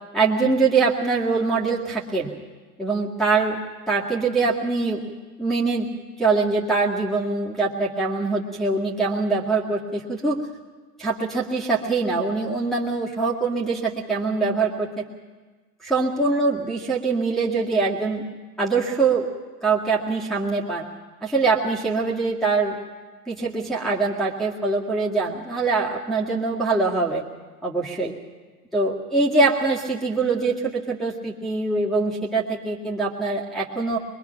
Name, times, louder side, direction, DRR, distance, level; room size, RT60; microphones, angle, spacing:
voice 1, 0.1-2.3 2.8-3.6 3.9-5.0 5.4-5.9 6.2-10.4 11.0-15.0 15.8-18.2 18.6-19.3 19.6-20.8 21.2-22.7 23.3-27.2 27.6-28.1 28.7-34.0, right 3 dB, ahead, -7 dB, 2.0 m, -23 dB
23.0 x 21.5 x 5.9 m, 1.4 s
hypercardioid pair, 115°, 48 cm